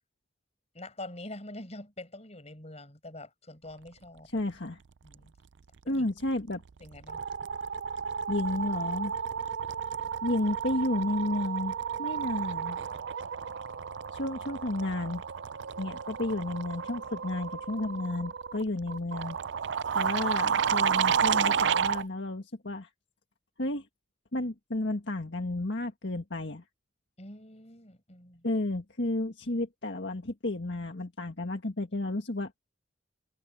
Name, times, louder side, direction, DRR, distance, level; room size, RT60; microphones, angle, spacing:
voice 1, 0.7-4.3 5.0-5.3 5.8-6.1 6.8-7.2 27.2-28.4, left 1 dB, 35° left, 6.4 m, -45 dB
voice 2, 4.2-4.8 5.9-6.6 8.3-9.1 10.2-12.8 14.1-15.2 15.8-19.4 19.9-22.9 23.6-23.9 24.3-26.6 28.4-32.6, left 2 dB, 65° left, 1.8 m, -32 dB
sound 1, 6.2-6.5 6.8-22.1, right 7 dB, 65° right, 0.5 m, -31 dB
head